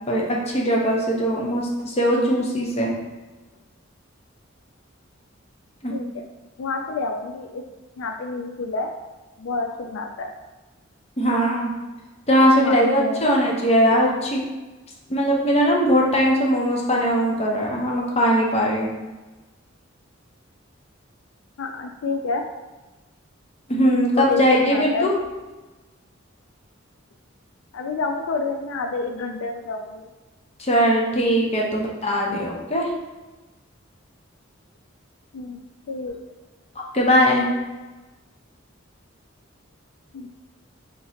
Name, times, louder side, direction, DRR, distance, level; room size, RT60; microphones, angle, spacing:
voice 1, 0.1-2.9 5.8-5.9 11.2-11.7 12.3-14.4 15.1-18.9 23.7-25.1 30.6-32.9 36.8-37.5, equal, 30° left, -2 dB, 0.8 m, -20 dB
voice 2, 6.6-7.6 8.0-8.9 9.4-10.3 12.6-13.5 21.6-22.4 24.1-25.1 27.7-30.1 31.6-31.7 35.3-36.2 40.1-40.3, left 3 dB, 80° left, 4 dB, 0.4 m, -29 dB
3.7 x 2.9 x 4.2 m, 1.2 s
head